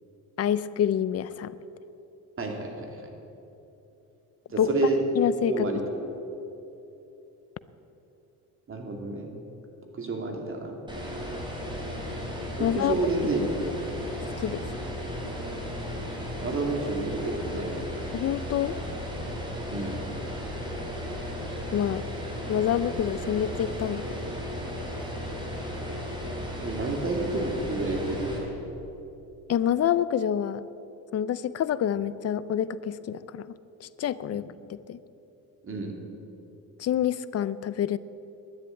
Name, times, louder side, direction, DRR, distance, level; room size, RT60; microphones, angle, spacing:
voice 1, 0.4-1.5 4.6-4.7 5.2-5.7 12.6-12.9 13.4-13.5 14.4-14.7 18.1-18.8 21.7-22.1 22.5-24.2 29.5-30.6 31.1-35.0 36.8-38.0, left 10 dB, 45° left, 16 dB, 0.6 m, -27 dB
voice 2, 2.4-3.1 4.5-5.0 5.5-5.8 8.7-9.3 9.9-10.8 12.6-13.4 16.4-17.8 19.7-20.0 26.6-28.5 34.3-34.4 35.6-35.9, right 3 dB, 35° right, 2 dB, 2.5 m, -30 dB
sound 1, 10.9-28.4, equal, 15° right, 3.6 m, -35 dB
11.5 x 9.8 x 9.1 m, 3.0 s
cardioid pair, 105°, 36 cm